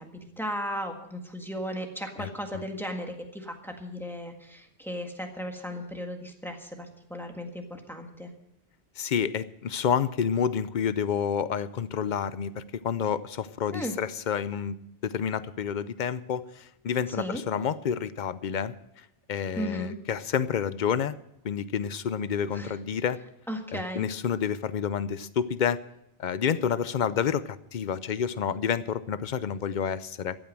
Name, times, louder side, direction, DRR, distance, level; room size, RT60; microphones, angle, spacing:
voice 1, 0.0-8.3 13.7-13.9 17.2-17.4 19.6-20.0 22.5-22.7 23.5-24.1, equal, ahead, 3 dB, 1.7 m, -36 dB
voice 2, 9.0-14.8 15.0-21.1 21.4-23.2 23.7-25.8 26.2-30.4, left 7 dB, 50° left, 15 dB, 0.7 m, -29 dB
14.5 x 9.0 x 7.6 m, 0.81 s
omnidirectional pair, 1.1 m